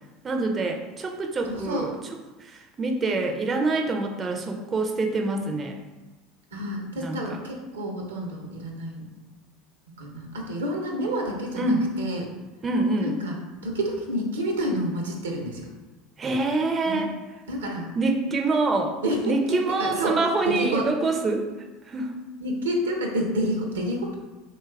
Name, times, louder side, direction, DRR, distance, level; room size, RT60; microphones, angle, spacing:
voice 1, 0.2-1.9 2.4-5.7 7.0-7.2 11.6-11.8 12.6-13.2 16.2-17.1 18.0-19.0 19.2-21.5 21.9-22.1, right 3 dB, 30° right, 3 dB, 0.4 m, -25 dB
voice 2, 1.5-1.9 6.5-9.1 10.0-12.3 13.0-13.4 13.6-15.6 16.8-17.0 17.5-17.9 19.0-20.2 20.5-20.9 22.4-24.2, right 1 dB, 85° right, 1 dB, 0.6 m, -29 dB
3.0 x 2.3 x 3.3 m, 1.1 s
hypercardioid pair, 80°, 0 cm